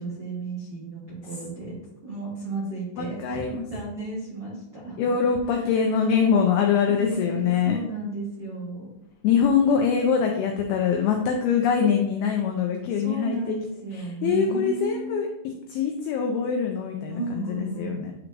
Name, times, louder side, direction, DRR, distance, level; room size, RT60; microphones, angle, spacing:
voice 1, 0.0-1.7 2.0-5.0 6.9-8.9 12.9-15.2 17.1-18.0, right 3 dB, 80° right, -8 dB, 0.9 m, -33 dB
voice 2, 3.0-3.6 5.0-7.8 9.2-13.6 13.9-18.1, left 6 dB, 90° left, 2 dB, 2.2 m, -24 dB
9.6 x 4.5 x 2.5 m, 0.84 s
omnidirectional pair, 5.2 m